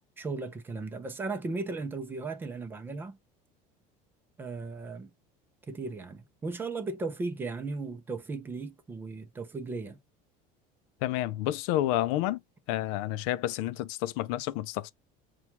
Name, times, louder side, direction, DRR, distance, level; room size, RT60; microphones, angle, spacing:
voice 1, 0.2-3.2 4.4-5.1 5.7-10.0, right 3 dB, 10° right, 0.4 m, -36 dB
voice 2, 11.0-12.4 12.7-14.9, left 14 dB, 70° left, 0.4 m, -30 dB
5.7 x 2.3 x 2.8 m
cardioid pair, 180°, 17 cm